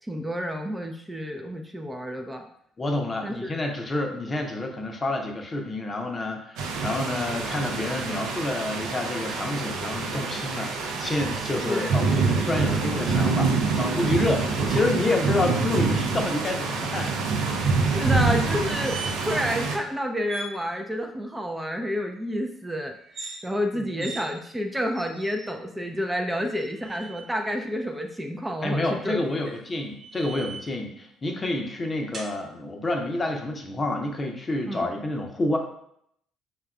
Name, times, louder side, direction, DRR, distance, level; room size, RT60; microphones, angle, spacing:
voice 1, 0.0-2.5 3.2-3.5 11.4-12.0 14.6-14.7 17.9-29.2 34.7-34.9, equal, 10° right, 3 dB, 0.4 m, -30 dB
voice 2, 2.8-17.2 23.7-24.1 28.6-35.6, left 2 dB, 30° left, 3 dB, 0.6 m, -28 dB
sound 1, 6.6-19.8, right 4 dB, 65° right, 0.5 m, -26 dB
sound 2, 18.5-19.4 19.7-19.8 20.3-20.5 23.0-23.4 24.0-24.3 24.9-25.5 26.5-27.3 29.2-30.8 32.1-32.3, right 3 dB, 50° right, 0.9 m, -40 dB
5.3 x 2.3 x 2.2 m, 0.69 s
hypercardioid pair, 50°, 0 cm